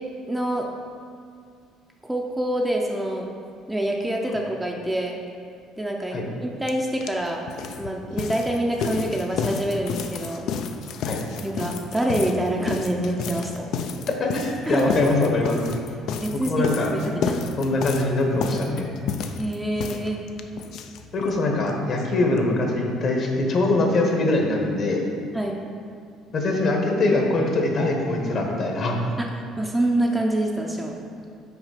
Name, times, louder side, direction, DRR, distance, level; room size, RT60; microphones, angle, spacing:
voice 1, 0.3-0.7 2.1-3.3 3.7-5.2 5.8-7.5 7.8-10.5 11.4-13.7 14.7-14.9 16.2-17.4 19.4-20.2 25.3-25.6 29.2-29.3 29.6-30.9, right 1 dB, 5° right, 0 dB, 0.5 m, -26 dB
sound 1, 6.7-6.8 7.0-21.4 21.7-21.8 22.0-22.1 22.4-22.5, left 6 dB, 65° left, 0.4 m, -31 dB
voice 2, 14.2-15.6 16.4-16.9 17.6-18.9 21.1-25.0 26.3-29.0, left 2 dB, 45° left, 1 dB, 1.2 m, -23 dB
5.9 x 4.4 x 5.8 m, 2.3 s
cardioid pair, 120°, 0 cm